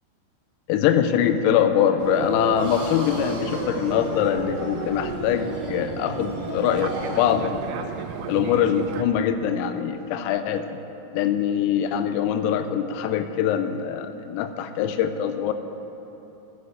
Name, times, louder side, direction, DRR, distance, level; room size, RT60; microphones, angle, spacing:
voice 1, 0.7-7.9 8.3-10.8 11.1-15.5, left 9 dB, 90° left, 9 dB, 3.3 m, -23 dB
Fixed-wing aircraft airplane, 2.0-9.0, right 8 dB, 80° right, 2.9 m, -34 dB
sound 1, 2.5-7.5, right 1 dB, 10° left, 2.0 m, -35 dB
13.0 x 7.7 x 6.9 m, 3.0 s
omnidirectional pair, 5.9 m